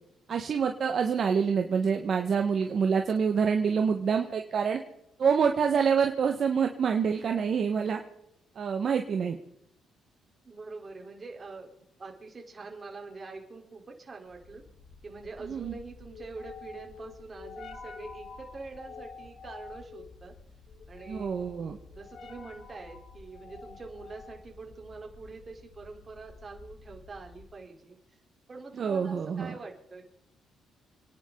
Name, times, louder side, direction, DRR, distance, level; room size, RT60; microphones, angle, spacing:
voice 1, 0.3-4.8 5.2-8.0 8.5-9.4 15.4-15.7 21.1-21.8 28.8-29.6, right 6 dB, 55° right, 4 dB, 1.5 m, -26 dB
voice 2, 10.4-14.6 15.0-20.3 20.9-21.3 21.9-28.0 28.5-30.1, right 3 dB, 35° right, 2 dB, 4.0 m, -45 dB
sound 1, 14.3-27.6, left 4 dB, 60° left, 3.2 m, -49 dB
29.0 x 10.5 x 4.0 m, 0.80 s
cardioid pair, 90°, 0 cm